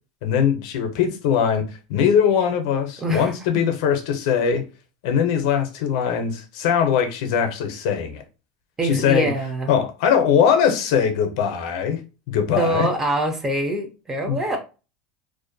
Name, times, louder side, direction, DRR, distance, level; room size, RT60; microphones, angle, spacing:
voice 1, 0.2-1.6 1.9-4.6 5.0-8.2 8.8-9.3 9.7-12.0 12.3-12.9 14.3-14.4, left 7 dB, 65° left, 0.5 m, -21 dB
voice 2, 3.0-3.7 8.8-9.7 12.6-14.6, right 1 dB, 10° right, 0.4 m, -24 dB
2.4 x 2.1 x 2.5 m
supercardioid pair, 165°, 3 cm